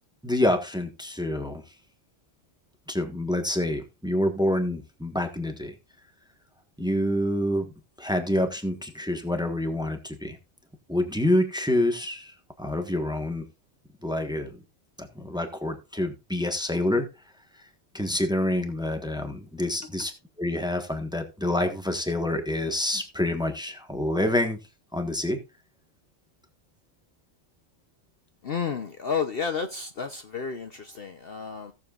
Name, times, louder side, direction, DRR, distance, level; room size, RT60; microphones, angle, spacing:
voice 1, 0.2-1.6 2.9-5.7 6.8-7.7 8.0-10.4 10.9-13.4 14.0-14.6 15.1-17.1 17.9-20.1 20.4-24.6 24.9-25.4, left 1 dB, 5° right, 1.3 m, -27 dB
voice 2, 28.4-31.7, left 6 dB, 50° left, 0.9 m, -31 dB
17.0 x 7.3 x 2.5 m
omnidirectional pair, 1.4 m